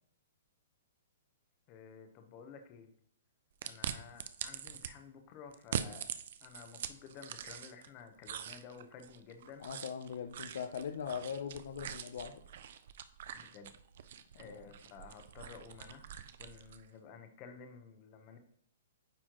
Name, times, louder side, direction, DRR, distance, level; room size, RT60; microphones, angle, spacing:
voice 1, 1.7-2.9 3.6-6.1 6.4-9.7 13.3-13.7 14.3-16.1 16.4-18.4, left 6 dB, 30° left, 6 dB, 0.9 m, -52 dB
sound 1, 3.6-4.9 5.5-7.9 8.2-16.9, right 9 dB, 55° right, 0.4 m, -44 dB
voice 2, 9.6-12.3 14.4-14.7, left 7 dB, 65° left, 5 dB, 0.6 m, -40 dB
9.0 x 4.3 x 3.0 m, 0.63 s
hypercardioid pair, 160°, 0 cm